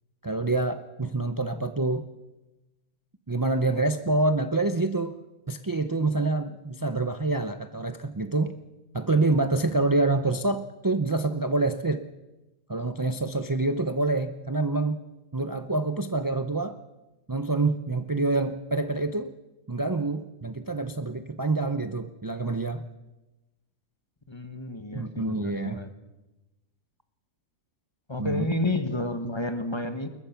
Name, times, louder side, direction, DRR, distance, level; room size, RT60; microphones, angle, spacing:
voice 1, 0.2-2.1 3.3-5.2 5.5-8.5 8.9-12.0 12.7-15.0 15.3-16.8 17.3-19.3 19.7-22.8 24.9-25.8 28.2-28.5, right 2 dB, 35° right, 9 dB, 0.3 m, -26 dB
voice 2, 24.3-25.9 28.1-30.1, left 2 dB, 20° left, 9 dB, 1.4 m, -30 dB
22.0 x 20.5 x 5.9 m, 1.0 s
omnidirectional pair, 1.7 m